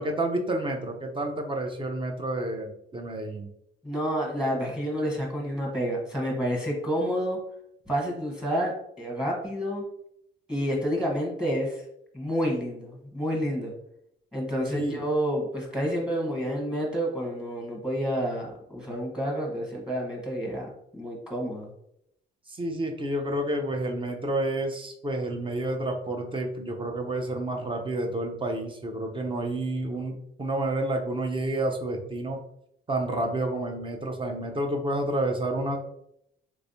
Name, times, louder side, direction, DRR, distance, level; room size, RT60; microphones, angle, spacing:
voice 1, 0.0-3.5 14.7-15.0 22.5-32.4 32.9-35.8, right 1 dB, 25° right, 3 dB, 0.7 m, -29 dB
voice 2, 3.8-7.4 7.9-9.8 10.5-11.8 12.1-13.7 14.3-21.7, equal, 5° right, -1 dB, 1.2 m, -29 dB
3.4 x 3.2 x 2.7 m, 0.76 s
cardioid pair, 90°, 20 cm